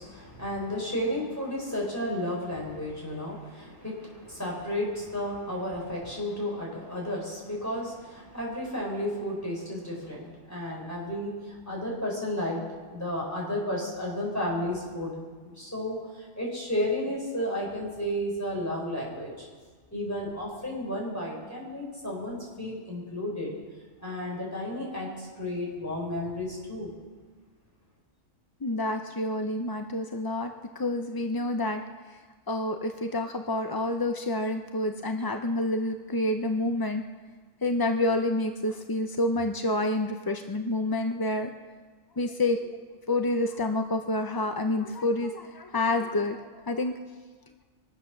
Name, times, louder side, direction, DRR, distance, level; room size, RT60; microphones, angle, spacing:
voice 1, 0.0-12.6 12.9-15.1 15.4-19.5 19.9-23.5 24.0-26.9, left 1 dB, 10° left, -3 dB, 4.7 m, -32 dB
voice 2, 28.6-31.8 32.5-37.0 37.6-41.5 42.2-42.7 43.1-46.9, left 2 dB, 30° left, 5 dB, 0.4 m, -28 dB
24.0 x 8.5 x 6.4 m, 1.4 s
omnidirectional pair, 1.4 m